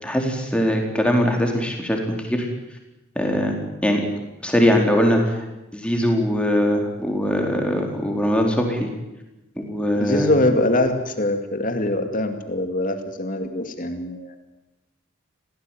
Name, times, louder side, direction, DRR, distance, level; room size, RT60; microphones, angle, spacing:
voice 1, 0.0-2.5 3.2-3.6 3.8-4.0 4.4-5.4 5.7-8.9 9.6-10.4, equal, 5° left, 2 dB, 4.5 m, -21 dB
voice 2, 9.9-14.3, left 1 dB, 40° left, 6 dB, 2.4 m, -23 dB
27.0 x 18.0 x 9.3 m, 1.0 s
head